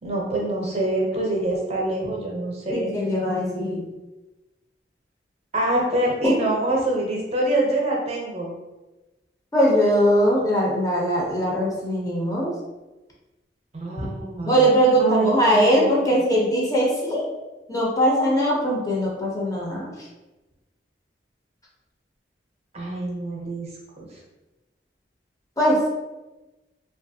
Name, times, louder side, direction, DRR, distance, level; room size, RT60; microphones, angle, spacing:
voice 1, 0.0-3.0 5.5-8.6 13.7-14.7 15.0-16.2 22.7-23.7 24.0-24.1, right 1 dB, 35° right, -2 dB, 0.6 m, -25 dB
voice 2, 2.7-3.8 6.2-6.3 9.5-12.5 14.0-14.1 14.5-17.3 17.7-19.9 25.6-25.8, equal, 20° left, -3 dB, 0.6 m, -21 dB
2.9 x 2.3 x 2.7 m, 1.1 s
head